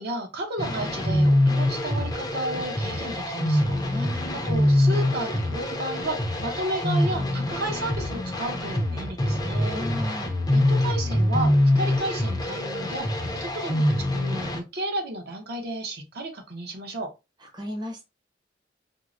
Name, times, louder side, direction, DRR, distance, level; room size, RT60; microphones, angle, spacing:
voice 1, 0.0-10.1 10.5-13.1 13.4-17.1, right 1 dB, 60° right, 0.8 m, -33 dB
sound 1, 0.6-14.6, left 1 dB, 20° left, 0.5 m, -24 dB
voice 2, 3.9-4.4 9.7-10.3 17.5-18.1, left 1 dB, 25° right, 0.7 m, -35 dB
4.5 x 2.0 x 2.5 m
head